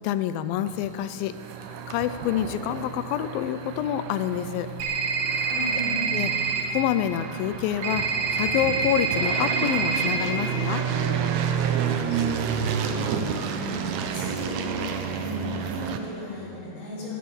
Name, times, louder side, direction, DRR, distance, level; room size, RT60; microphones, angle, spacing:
voice 1, 0.0-1.3 1.9-4.7 6.1-6.3 6.7-8.1 8.3-10.9, left 11 dB, 80° left, 12 dB, 2.2 m, -27 dB
sound 1, 0.7-16.0, right 7 dB, 75° right, 1.8 m, -30 dB
sound 2, 4.8-6.6 7.8-10.2, right 5 dB, 55° right, 1.9 m, -26 dB
voice 2, 5.5-6.0 12.1-14.8 15.1-17.1, left 1 dB, 55° left, -7 dB, 5.3 m, -36 dB
14.5 x 12.5 x 7.1 m, 2.8 s
omnidirectional pair, 4.4 m